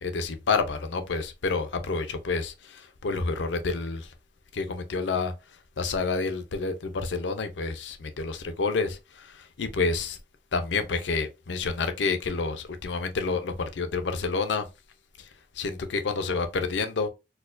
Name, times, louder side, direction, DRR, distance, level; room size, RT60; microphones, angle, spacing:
voice 1, 0.0-4.1 4.5-10.2 10.5-14.7 15.2-17.1, left 4 dB, 80° left, 0.5 m, -29 dB
4.3 x 2.2 x 2.5 m
head